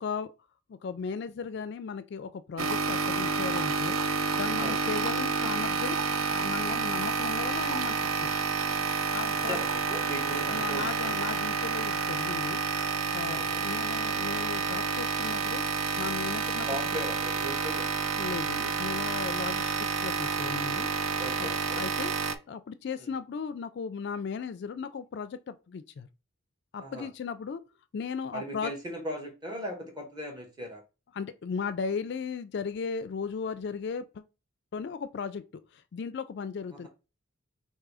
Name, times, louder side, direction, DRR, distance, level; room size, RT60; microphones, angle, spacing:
voice 1, 0.8-4.0 4.3-6.0 6.3-8.3 9.1-9.6 10.3-12.6 13.1-15.6 16.0-16.7 18.2-19.7 20.0-20.9 21.4-21.5 21.8-22.1 22.5-26.1 26.7-27.6 27.9-28.7 31.1-34.2 34.7-35.4 35.9-36.9, left 5 dB, 55° left, 0.3 m, -36 dB
sound 1, 2.6-22.4, right 5 dB, 80° right, 0.5 m, -29 dB
voice 2, 9.4-11.3 13.3-13.7 16.7-17.9 21.2-21.8 23.0-23.1 26.8-27.1 28.3-30.8 36.7-36.9, equal, 20° right, 1.3 m, -38 dB
3.7 x 2.7 x 4.7 m
head